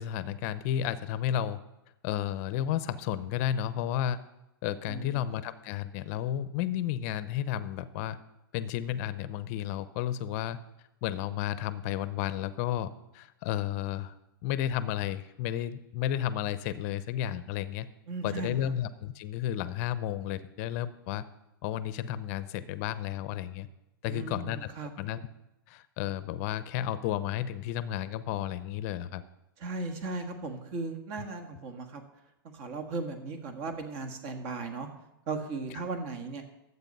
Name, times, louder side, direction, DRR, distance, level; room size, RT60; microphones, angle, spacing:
voice 1, 0.0-1.6 2.0-4.2 4.6-8.2 8.5-10.6 11.0-14.1 14.4-17.9 18.2-21.2 21.6-23.7 24.0-24.7 25.0-25.3 25.7-29.2, left 11 dB, 40° left, 14 dB, 0.7 m, -32 dB
voice 2, 4.9-5.2 18.1-18.7 24.0-24.9 29.6-32.0 32.5-34.9 35.3-36.4, right 3 dB, 40° right, 6 dB, 1.6 m, -37 dB
11.5 x 8.1 x 5.4 m, 0.93 s
hypercardioid pair, 150°, 12 cm